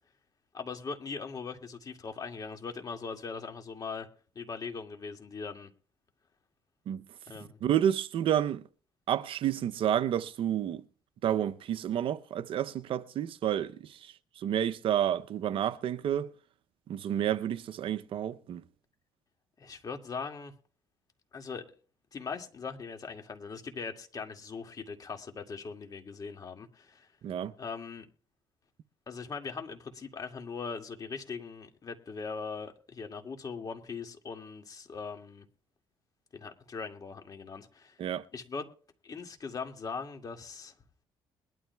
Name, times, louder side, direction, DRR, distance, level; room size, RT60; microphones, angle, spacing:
voice 1, 0.5-4.1 4.4-5.7 7.3-7.6 19.6-20.5 21.3-21.6 22.1-27.1 27.6-28.1 29.1-35.4 36.3-38.0 38.3-38.7 39.0-40.7, left 5 dB, 40° left, 2.2 m, -40 dB
voice 2, 7.6-8.6 9.1-10.8 11.2-16.3 16.9-18.6 27.2-27.5 38.0-38.2, right 10 dB, 65° right, 0.7 m, -30 dB
21.5 x 12.5 x 2.3 m
cardioid pair, 85°, 10 cm